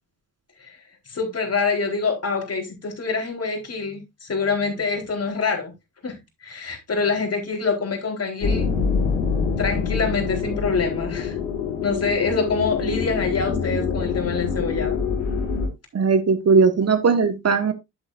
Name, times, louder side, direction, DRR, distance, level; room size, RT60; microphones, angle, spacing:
voice 1, 1.1-5.7 6.0-8.7 8.9-9.1 9.6-11.4 11.8-15.0, left 4 dB, 40° left, 4.1 m, -25 dB
sound 1, 8.4-15.7, left 5 dB, 90° left, 1.8 m, -25 dB
voice 2, 15.9-17.7, right 5 dB, 40° right, 1.4 m, -18 dB
10.0 x 7.9 x 2.6 m
hypercardioid pair, 45°, 38 cm